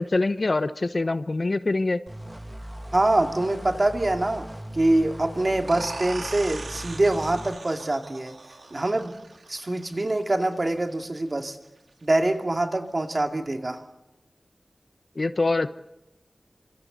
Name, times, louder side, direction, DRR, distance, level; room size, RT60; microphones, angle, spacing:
voice 1, 0.0-2.0 15.2-15.7, left 2 dB, 50° left, 12 dB, 0.9 m, -24 dB
sound 1, 2.1-7.6, right 1 dB, 10° right, 2.1 m, -39 dB
voice 2, 2.9-4.5 4.7-8.3 8.7-9.2 9.5-11.6 12.0-13.8, right 2 dB, 40° right, 4 dB, 2.5 m, -24 dB
sound 2, 5.7-11.1, right 3 dB, 80° right, 2.8 m, -40 dB
29.0 x 26.0 x 4.1 m, 0.99 s
wide cardioid pair, 75°, 0 cm